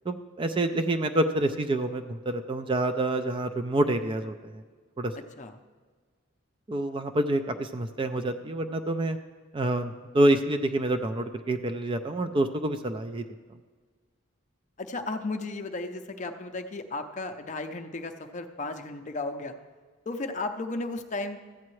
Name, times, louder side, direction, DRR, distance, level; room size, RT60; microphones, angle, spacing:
voice 1, 0.1-4.5 5.0-5.1 6.7-9.2 9.5-13.2, right 1 dB, 25° right, 8 dB, 0.3 m, -27 dB
voice 2, 5.1-5.6 14.8-19.6 20.1-21.4, left 2 dB, 35° left, 7 dB, 0.5 m, -34 dB
14.0 x 8.5 x 3.2 m, 1.5 s
head